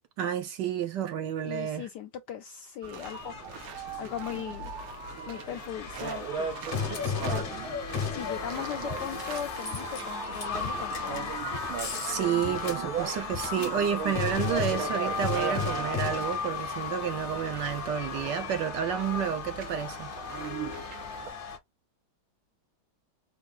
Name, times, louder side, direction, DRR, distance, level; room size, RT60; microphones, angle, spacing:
voice 1, 0.2-1.9 12.0-20.1, right 9 dB, 70° right, 1.2 m, -30 dB
voice 2, 1.4-4.7 5.3-6.6 7.3-7.5 8.1-11.5, left 10 dB, 75° left, 0.9 m, -39 dB
sound 1, 2.8-21.3, right 7 dB, 85° right, 1.7 m, -38 dB
sound 2, 3.0-21.6, left 6 dB, 45° left, 0.9 m, -35 dB
4.4 x 2.4 x 3.5 m
omnidirectional pair, 2.3 m